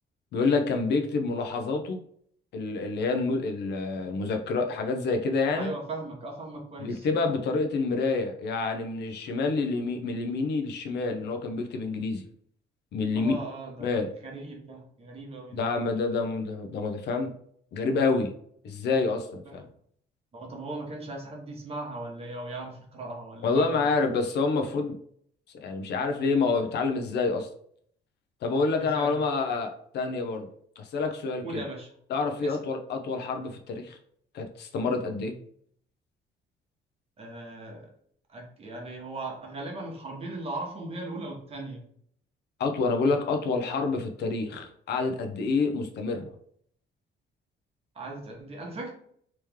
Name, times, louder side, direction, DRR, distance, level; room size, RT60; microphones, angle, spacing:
voice 1, 0.3-2.0 2.5-5.7 6.8-12.2 12.9-13.3 13.8-14.1 15.5-17.3 17.7-18.3 18.6-19.7 23.4-24.9 25.6-27.5 28.4-30.5 30.8-31.6 32.1-34.0 34.3-35.4 42.6-46.3, left 4 dB, 65° left, 5 dB, 0.6 m, -28 dB
voice 2, 5.5-7.1 13.1-13.9 14.2-15.6 19.4-19.7 20.3-23.9 28.8-29.2 31.4-31.9 32.4-32.7 37.2-37.9 38.3-41.8 47.9-48.9, right 2 dB, 30° right, 1 dB, 1.0 m, -38 dB
3.2 x 3.0 x 3.5 m, 0.63 s
cardioid pair, 150°, 18 cm